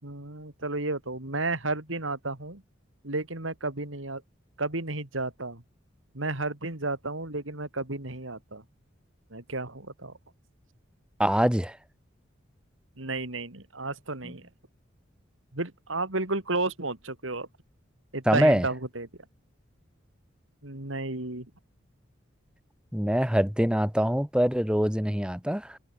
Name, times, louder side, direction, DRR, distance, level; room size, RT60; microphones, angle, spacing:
voice 1, 0.0-2.6 3.0-4.2 4.6-5.6 6.1-8.6 9.3-10.1 13.0-14.4 15.5-17.5 18.1-19.1 20.6-21.5, right 2 dB, 80° right, 3.5 m, -32 dB
voice 2, 11.2-11.8 14.2-14.3 18.3-18.7 22.9-25.8, equal, 5° right, 1.4 m, -24 dB
head